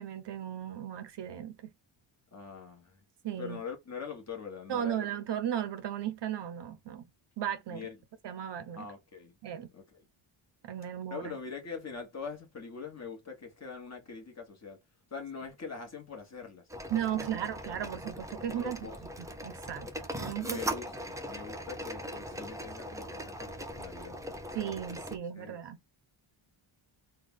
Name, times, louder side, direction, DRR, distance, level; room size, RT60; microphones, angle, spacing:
voice 1, 0.0-1.7 3.2-3.6 4.7-7.1 7.4-7.8 8.2-8.9 9.4-9.7 10.6-11.4 16.9-18.9 19.2-19.9 20.2-20.6 24.5-25.8, right 10 dB, 60° right, 0.6 m, -35 dB
voice 2, 2.3-3.0 3.4-5.1 7.7-8.0 8.7-9.4 9.7-10.0 11.1-14.8 15.1-16.6 17.3-17.7 18.3-19.0 20.4-24.2 25.3-25.6, left 5 dB, 35° left, 1.1 m, -43 dB
sound 1, 16.7-25.2, equal, 10° right, 0.3 m, -40 dB
3.2 x 2.2 x 3.6 m
wide cardioid pair, 140°, 49 cm